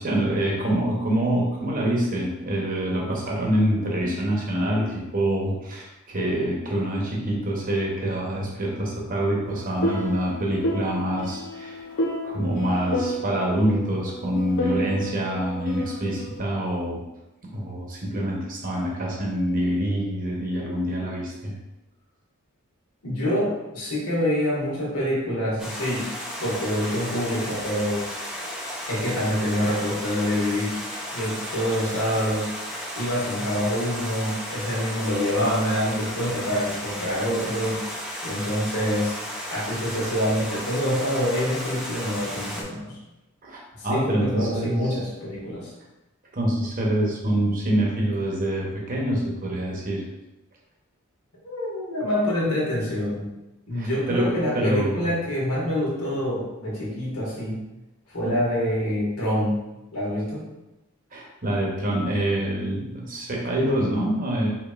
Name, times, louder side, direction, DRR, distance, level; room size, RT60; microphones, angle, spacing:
voice 1, 0.0-11.8 12.2-17.0 17.5-21.6 43.4-45.0 46.3-50.0 53.7-55.1 58.2-58.5 61.1-64.5, right 1 dB, 40° right, -2 dB, 0.8 m, -26 dB
sound 1, 9.4-16.4, equal, 55° left, 0.6 m, -31 dB
voice 2, 23.0-26.1 26.4-28.1 28.9-30.8 31.1-32.5 32.9-37.8 38.2-39.2 39.5-43.0 43.7-45.7 51.4-53.3 53.7-57.6 58.1-59.6 59.9-60.5, equal, 85° left, -5 dB, 1.4 m, -26 dB
Stream, 25.6-42.6, equal, ahead, 0.4 m, -34 dB
4.9 x 2.9 x 2.4 m, 0.98 s
head